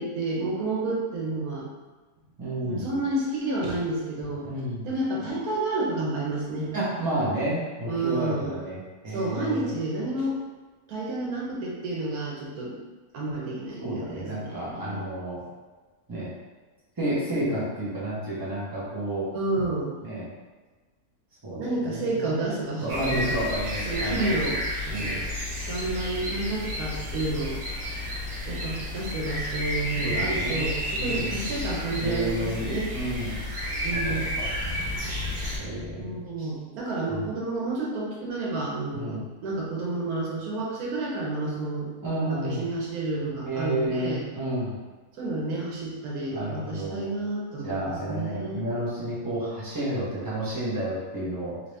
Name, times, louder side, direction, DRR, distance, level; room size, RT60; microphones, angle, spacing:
voice 1, 0.0-1.7 2.6-4.5 4.8-6.7 7.9-8.6 9.1-10.4 10.9-12.7 13.1-15.0 19.3-19.9 21.6-23.4 23.9-24.6 24.8-25.3 25.7-27.6 28.5-32.9 33.8-34.4 36.0-41.9 42.3-44.3 45.2-48.7, right 2 dB, 90° right, -4 dB, 1.3 m, -30 dB
voice 2, 2.4-2.9 4.4-4.9 6.7-8.8 9.0-9.7 13.8-15.4 16.1-16.3 17.0-19.3 20.0-20.3 21.4-22.4 22.8-24.4 24.9-25.2 30.0-30.7 31.0-31.5 32.0-33.4 33.9-34.5 35.6-36.2 37.1-37.3 38.9-39.2 42.0-42.6 43.4-44.7 46.3-47.1 47.6-51.6, right 1 dB, 15° right, -9 dB, 0.9 m, -31 dB
sound 1, 22.9-35.6, left 1 dB, 55° right, 0.4 m, -31 dB
sound 2, 31.6-32.5 33.1-33.2 33.8-36.2, left 1 dB, 55° left, 0.6 m, -39 dB
2.9 x 2.8 x 3.2 m, 1.3 s
omnidirectional pair, 1.5 m